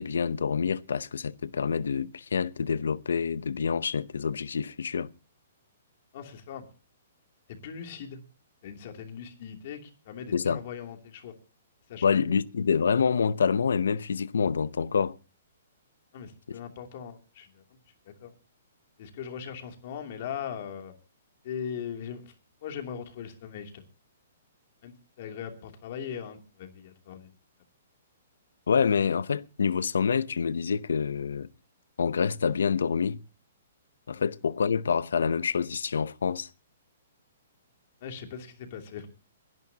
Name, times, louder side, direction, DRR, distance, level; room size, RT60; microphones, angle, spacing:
voice 1, 0.0-5.1 10.3-10.6 12.0-15.2 16.5-16.6 28.7-31.5 32.0-33.2 34.1-36.5, left 6 dB, 90° left, 0.7 m, -27 dB
voice 2, 6.1-6.6 7.5-8.2 8.6-11.3 11.9-12.4 16.1-17.5 18.2-18.3 19.0-20.9 21.4-22.2 22.6-23.8 24.8-27.3 38.0-39.1, left 8 dB, 50° left, 2.8 m, -39 dB
28.0 x 11.0 x 2.9 m
hypercardioid pair, 155°, 0 cm